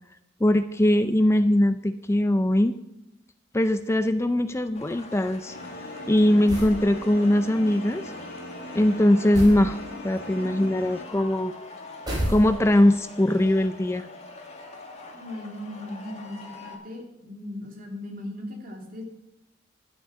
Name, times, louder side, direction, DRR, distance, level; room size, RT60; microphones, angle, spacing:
voice 1, 0.4-2.8 3.5-5.6 6.1-8.1 8.7-11.5 12.3-14.1, left 1 dB, 15° left, 10 dB, 0.4 m, -21 dB
sound 1, 4.7-16.7, left 3 dB, 35° left, 1.9 m, -44 dB
sound 2, 5.5-11.0, left 1 dB, 60° left, 3.6 m, -40 dB
sound 3, 6.5-6.8 9.3-9.7 12.1-12.8, equal, 25° right, 4.5 m, -29 dB
voice 2, 15.1-19.0, left 1 dB, 50° right, 0 dB, 2.8 m, -38 dB
11.5 x 8.2 x 6.8 m, 0.88 s
head